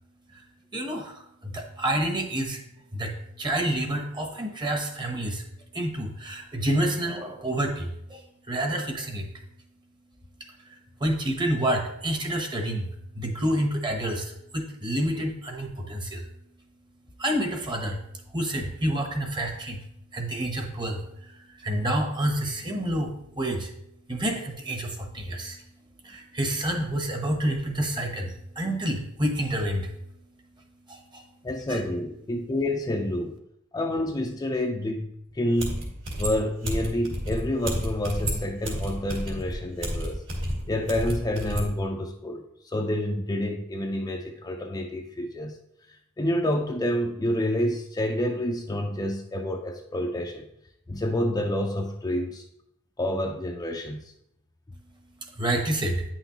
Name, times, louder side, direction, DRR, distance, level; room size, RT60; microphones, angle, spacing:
voice 1, 0.7-2.6 2.9-5.4 5.7-8.2 8.5-9.3 11.0-12.9 13.1-16.2 17.2-18.0 18.3-19.8 20.1-21.0 21.6-23.7 24.1-25.6 26.0-29.9 30.9-31.2 31.7-31.8 55.4-56.0, right 1 dB, 20° right, 3 dB, 0.9 m, -28 dB
voice 2, 31.4-33.3 33.7-40.2 40.7-45.6 46.2-50.4 50.9-52.4 53.0-54.1, left 1 dB, 15° left, 2 dB, 0.4 m, -28 dB
sound 1, 35.3-35.4 35.6-41.7, equal, 60° right, 1.9 m, -31 dB
8.9 x 5.8 x 2.9 m, 0.77 s
head